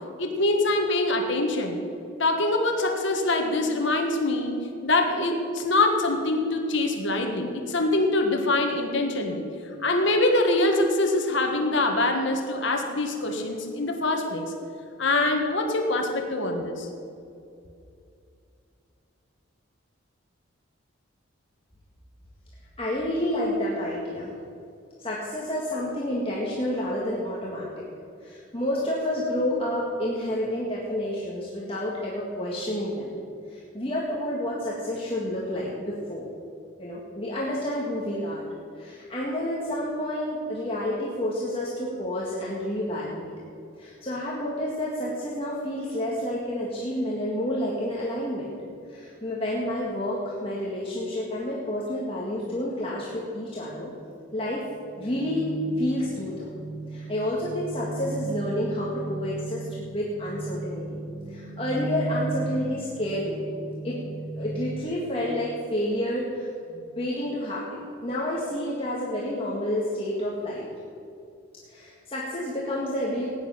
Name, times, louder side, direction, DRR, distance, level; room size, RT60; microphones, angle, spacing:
voice 1, 0.2-1.8 2.2-9.4 9.8-14.5 15.0-16.9, left 2 dB, 60° left, 3 dB, 1.5 m, -24 dB
voice 2, 22.8-24.3 25.0-27.8 28.2-33.1 33.5-36.2 36.8-38.4 38.7-43.3 43.8-48.5 48.9-53.9 54.3-54.6 55.0-55.5 55.8-56.5 56.9-61.0 61.3-63.4 63.8-64.0 64.4-70.7 71.7-73.3, left 1 dB, 25° left, -5 dB, 1.8 m, -29 dB
sound 1, 53.0-53.2 53.5-64.8, right 3 dB, 85° right, 2.7 m, -36 dB
17.5 x 9.9 x 5.7 m, 2.6 s
head